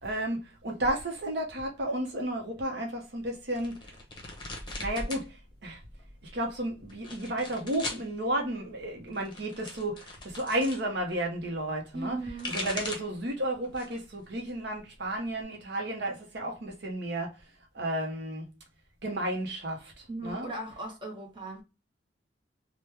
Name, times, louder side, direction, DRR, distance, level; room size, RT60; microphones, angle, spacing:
voice 1, 0.0-3.8 4.8-5.4 5.6-5.8 6.3-12.2 12.5-17.3 17.7-18.5 19.0-20.5, right 1 dB, 65° right, 0.8 m, -32 dB
sound 1, 3.5-5.3 5.6-6.2 6.9-8.1 9.1-10.8 12.1-13.2 13.6-14.1 14.5-15.4, left 2 dB, 25° left, 0.8 m, -39 dB
voice 2, 11.9-12.6 20.1-21.6, right 2 dB, 25° right, 0.9 m, -38 dB
3.0 x 2.2 x 3.2 m
head